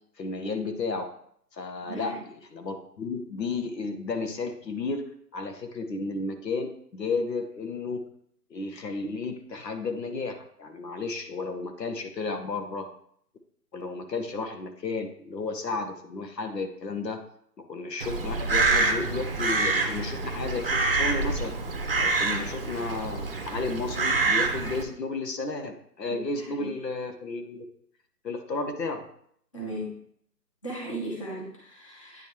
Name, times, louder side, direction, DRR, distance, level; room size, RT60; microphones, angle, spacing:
voice 1, 0.2-1.1 1.5-2.2 2.5-5.0 5.3-8.0 8.5-12.9 13.7-17.2 17.6-21.5 22.0-27.6 28.2-29.1, left 3 dB, 80° left, 6 dB, 1.3 m, -33 dB
voice 2, 1.8-2.2 26.4-26.7 29.5-30.0 30.6-32.2, right 1 dB, 20° left, -3 dB, 0.9 m, -37 dB
Crow, 18.0-24.8, right 3 dB, 35° right, 0.7 m, -26 dB
9.2 x 5.1 x 3.0 m, 0.66 s
hypercardioid pair, 165°, 49 cm